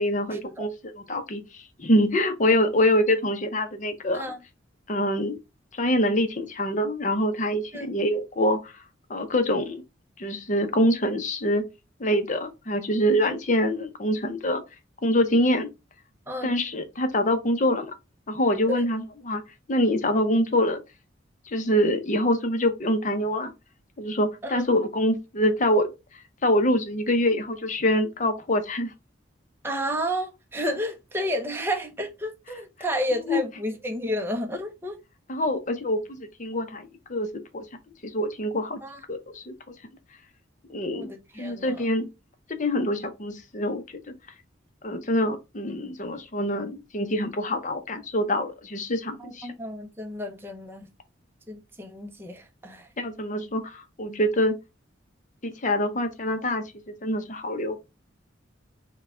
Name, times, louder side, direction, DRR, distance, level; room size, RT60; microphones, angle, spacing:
voice 1, 0.0-4.2 4.9-5.4 5.7-8.7 9.1-9.8 10.2-11.6 12.0-14.6 15.0-15.7 16.4-17.9 18.3-19.4 19.7-20.8 21.5-23.5 24.0-25.9 26.4-28.9 33.3-33.4 35.3-37.7 38.0-38.8 39.1-39.5 40.7-41.1 41.4-42.1 42.6-44.1 44.8-49.5 53.0-54.6 55.4-57.8, left 1 dB, 40° left, 0.7 m, -25 dB
voice 2, 29.6-35.0 38.8-39.0 40.9-41.9 49.2-50.9 51.5-52.9, equal, 10° right, 0.7 m, -31 dB
4.5 x 2.3 x 4.3 m
head